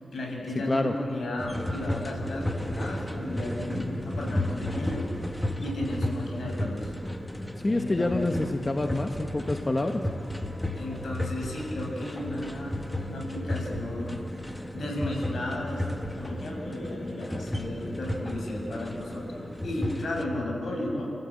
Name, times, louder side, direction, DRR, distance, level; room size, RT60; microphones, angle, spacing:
voice 1, 0.0-5.1 5.6-6.9 7.4-8.2 10.7-12.8 13.0-14.2 14.7-21.1, left 1 dB, 70° left, 0 dB, 6.8 m, -34 dB
sound 1, 1.4-20.2, left 1 dB, 10° left, 1.8 m, -33 dB
voice 2, 7.6-10.0, left 2 dB, 30° left, 4 dB, 1.3 m, -27 dB
29.5 x 16.0 x 8.5 m, 2.5 s
cardioid pair, 70°, 0 cm